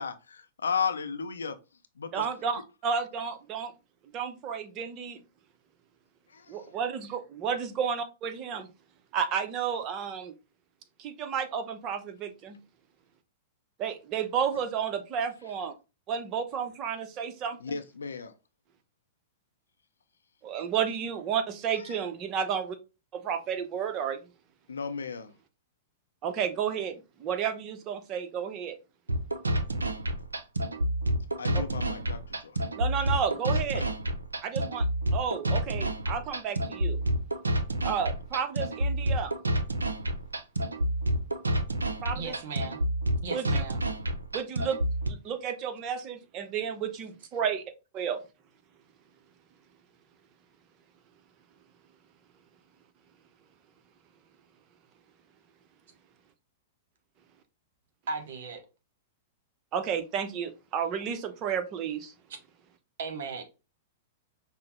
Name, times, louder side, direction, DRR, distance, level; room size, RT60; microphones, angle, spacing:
voice 1, 0.0-1.6 2.0-2.2 6.3-6.6 17.6-18.3 24.7-25.3 31.4-32.6 33.7-33.9, left 6 dB, 75° left, 0.5 m, -34 dB
voice 2, 2.1-3.7 4.1-5.2 6.5-8.7 9.1-10.3 11.0-12.6 13.8-15.7 16.1-17.8 20.4-22.8 23.1-24.2 26.2-28.8 31.5-31.6 32.8-33.8 34.4-34.9 35.1-37.0 37.8-39.3 42.0-42.3 43.3-43.6 44.3-44.8 45.1-47.6 47.9-48.2 59.7-62.1, right 7 dB, 35° right, 0.7 m, -32 dB
sound 1, 29.1-45.1, right 1 dB, 85° right, 0.4 m, -29 dB
voice 3, 42.1-42.8 43.2-43.8 58.1-58.6 63.0-63.4, right 4 dB, 60° right, 1.0 m, -36 dB
5.5 x 2.0 x 2.9 m
figure-of-eight pair, 105°, 0 cm